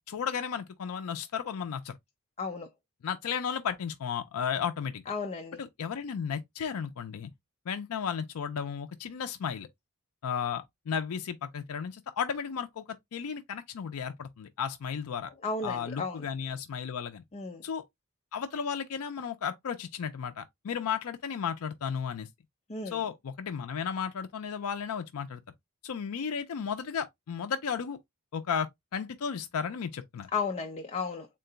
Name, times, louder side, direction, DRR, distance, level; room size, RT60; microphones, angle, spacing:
voice 1, 0.0-1.9 3.0-5.0 5.6-7.3 7.7-9.7 10.2-15.3 15.6-17.2 17.6-17.8 18.3-22.3 22.9-25.4 25.8-28.0 28.3-30.3, left 7 dB, 85° left, 0.4 m, -34 dB
voice 2, 2.4-2.7 5.1-5.6 15.4-16.2 17.3-17.6 22.7-23.0 30.3-31.3, left 4 dB, 30° left, 0.5 m, -34 dB
3.7 x 2.2 x 3.8 m
head